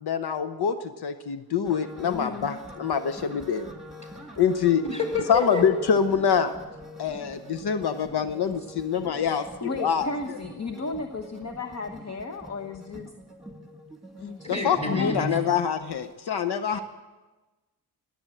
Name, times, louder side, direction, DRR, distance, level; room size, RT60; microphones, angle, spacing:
voice 1, 0.0-3.7 4.4-4.8 5.3-6.5 7.0-10.1 14.5-16.8, left 7 dB, 85° left, 10 dB, 0.8 m, -25 dB
sound 1, 1.6-16.1, equal, ahead, 2.3 m, -45 dB
voice 2, 2.0-2.5 9.3-13.1 14.2-14.5 14.9-15.6, left 3 dB, 45° left, 5 dB, 1.1 m, -35 dB
voice 3, 4.9-5.8 14.5-15.4, left 3 dB, 15° left, 2 dB, 4.6 m, -28 dB
21.0 x 8.7 x 7.8 m, 1.2 s
wide cardioid pair, 80°, 38 cm